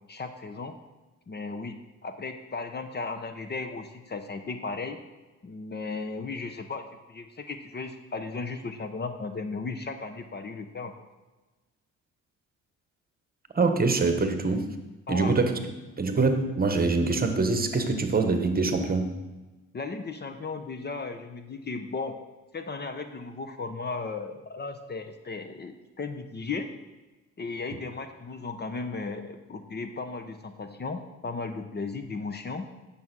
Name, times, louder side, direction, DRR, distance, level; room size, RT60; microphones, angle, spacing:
voice 1, 0.1-0.7 1.3-1.8 2.0-5.0 5.4-10.9 15.1-15.4 19.7-22.2 22.5-26.7 27.4-32.6, left 4 dB, 35° left, 8 dB, 0.9 m, -35 dB
voice 2, 13.5-14.7 15.1-15.5 16.0-19.1, right 3 dB, 30° right, 6 dB, 1.3 m, -24 dB
9.5 x 7.0 x 6.2 m, 1.2 s
cardioid pair, 90°, 30 cm